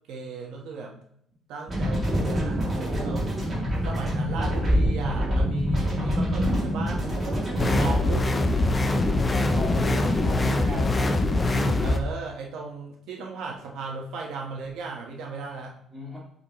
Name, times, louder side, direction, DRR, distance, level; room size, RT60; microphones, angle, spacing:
voice 1, 0.1-0.9 1.5-3.3 3.8-7.0 7.8-8.3 10.6-10.8 11.8-15.7, right 4 dB, 70° right, -1 dB, 1.3 m, -36 dB
sound 1, 1.7-7.9, equal, 20° right, 2.7 m, -25 dB
sound 2, 7.6-12.0, left 2 dB, 15° left, 0.5 m, -23 dB
voice 2, 9.5-10.9 15.9-16.2, left 1 dB, ahead, -7 dB, 2.5 m, -36 dB
8.1 x 4.2 x 3.1 m, 0.70 s
cardioid pair, 165°, 0 cm